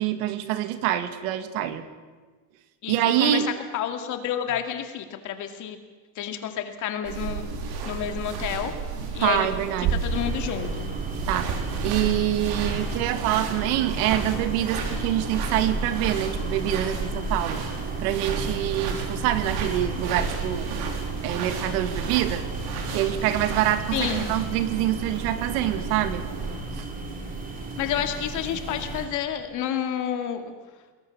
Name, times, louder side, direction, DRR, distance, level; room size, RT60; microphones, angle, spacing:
voice 1, 0.0-1.8 2.9-3.5 9.0-10.0 11.3-11.6 11.8-17.6 18.0-20.8 21.2-22.5 22.9-26.3 26.7-26.9, right 12 dB, 70° right, 10 dB, 2.2 m, -26 dB
voice 2, 2.8-3.4 3.7-5.8 6.2-7.4 7.9-8.7 9.1-9.5 10.0-10.9 23.9-24.3 27.8-30.5, left 9 dB, 40° left, 6 dB, 2.5 m, -29 dB
sound 1, 7.0-26.6, right 5 dB, 50° right, 4.7 m, -33 dB
sound 2, 10.1-29.1, right 3 dB, 20° right, 4.0 m, -33 dB
29.0 x 20.5 x 7.2 m, 1.4 s
cardioid pair, 165°, 46 cm